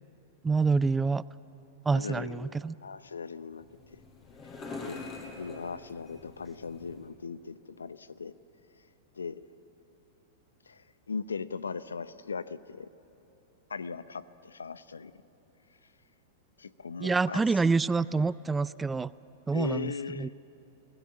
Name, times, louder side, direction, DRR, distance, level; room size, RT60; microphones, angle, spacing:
voice 1, 0.4-1.2 1.9-2.7 17.0-19.1 19.5-20.3, right 4 dB, 15° right, 19 dB, 0.4 m, -27 dB
voice 2, 1.9-3.7 3.9-4.0 4.8-5.0 5.4-8.3 9.1-9.5 10.7-12.9 13.7-15.1 16.6-17.7 19.5-20.3, left 5 dB, 85° left, 16 dB, 0.6 m, -39 dB
Glass Passing, 3.5-7.1, left 3 dB, 30° left, 4.9 m, -44 dB
23.0 x 17.5 x 8.6 m, 2.9 s
hypercardioid pair, 105°, 0 cm